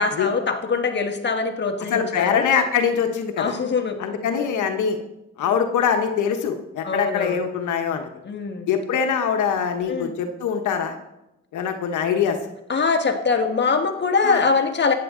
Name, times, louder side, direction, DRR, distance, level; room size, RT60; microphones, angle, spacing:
voice 1, 0.0-2.5 3.4-4.0 4.3-4.5 6.8-7.5 8.2-8.7 9.9-10.1 12.7-14.9, left 4 dB, 35° left, 4 dB, 1.5 m, -23 dB
voice 2, 1.9-3.6 4.0-5.0 5.4-8.1 8.7-10.9 11.5-12.4 14.2-14.4, left 7 dB, 80° left, 5 dB, 1.1 m, -23 dB
14.5 x 9.5 x 3.7 m, 0.92 s
cardioid pair, 90°, 30 cm